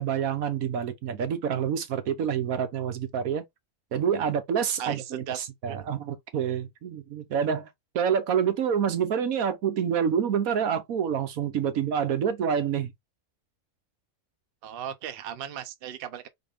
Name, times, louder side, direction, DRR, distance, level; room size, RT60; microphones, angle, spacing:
voice 1, 0.0-3.4 3.9-12.9, right 8 dB, 70° right, 1.3 m, -27 dB
voice 2, 4.8-5.4 5.7-5.9 14.6-16.3, right 9 dB, 55° right, 0.7 m, -37 dB
4.1 x 3.7 x 3.4 m
omnidirectional pair, 1.6 m